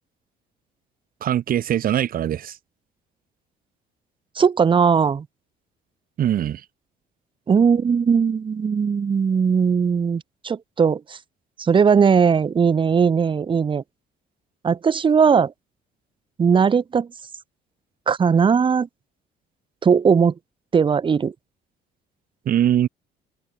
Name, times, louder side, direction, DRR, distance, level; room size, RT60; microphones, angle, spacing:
voice 1, 1.2-2.6 6.2-6.6 22.5-22.9, right 11 dB, 55° right, 5.4 m, -21 dB
voice 2, 4.4-5.3 7.5-11.2 11.6-13.8 14.6-15.5 16.4-17.1 18.1-18.9 19.8-20.3 20.7-21.3, right 6 dB, 30° right, 1.0 m, -18 dB
open air
cardioid pair, 110°, 17 cm